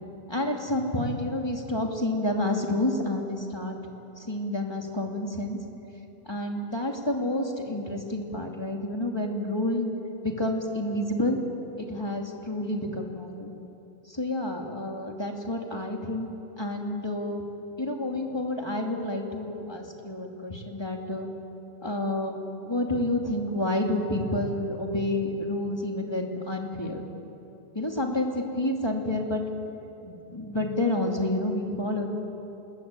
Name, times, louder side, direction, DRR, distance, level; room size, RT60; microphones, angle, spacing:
voice 1, 0.3-3.8 4.2-5.6 6.2-9.9 10.2-11.4 11.8-13.5 14.0-16.3 16.6-17.4 17.8-21.3 21.8-27.0 27.7-29.4 30.0-32.1, left 1 dB, 15° left, 1 dB, 2.8 m, -29 dB
29.0 x 21.5 x 9.1 m, 3.0 s
omnidirectional pair, 1.8 m